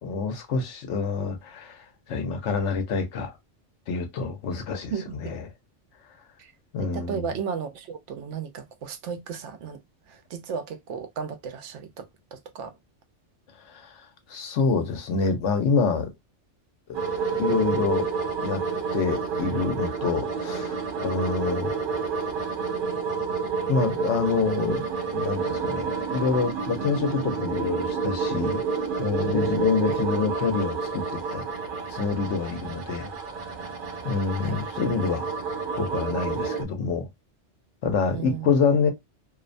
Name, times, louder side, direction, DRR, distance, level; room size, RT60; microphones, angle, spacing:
voice 1, 0.0-3.4 3.9-4.9 5.2-5.4 6.7-7.3 13.7-16.1 16.9-17.0 17.4-18.1 18.4-18.6 18.9-21.7 23.7-24.8 25.1-28.6 29.0-31.4 31.9-33.1 34.0-35.3 35.7-37.1 37.8-38.9, left 5 dB, 75° left, 1.0 m, -27 dB
voice 2, 6.8-9.8 10.1-12.7 29.9-30.0 34.4-34.5 38.1-38.6, right 7 dB, 80° right, 0.9 m, -34 dB
sound 1, 16.9-36.6, right 5 dB, 60° right, 0.6 m, -29 dB
2.6 x 2.1 x 2.4 m
omnidirectional pair, 1.2 m